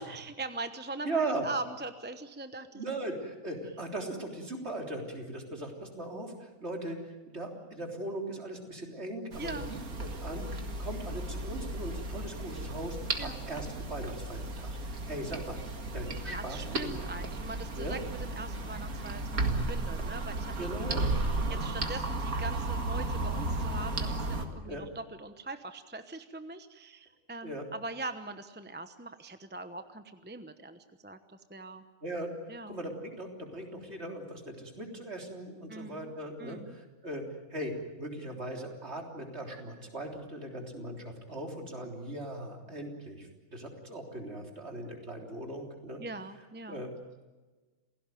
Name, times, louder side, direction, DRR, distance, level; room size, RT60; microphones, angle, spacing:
voice 1, 0.0-2.8 9.4-9.7 13.2-13.4 16.3-19.2 19.5-21.0 21.6-31.8 32.5-32.8 35.7-36.1 36.4-36.8 46.0-46.9, right 2 dB, 10° right, 9 dB, 0.9 m, -41 dB
voice 2, 1.0-1.5 2.7-17.0 17.7-18.0 20.6-21.1 21.4-21.6 24.6-24.8 27.4-27.6 32.0-32.3 32.7-46.0 46.7-46.9, right 1 dB, 50° right, 2 dB, 3.9 m, -39 dB
sound 1, 9.3-24.5, right 2 dB, 85° right, 2.5 m, -34 dB
28.0 x 17.5 x 9.2 m, 1.2 s
omnidirectional pair, 1.4 m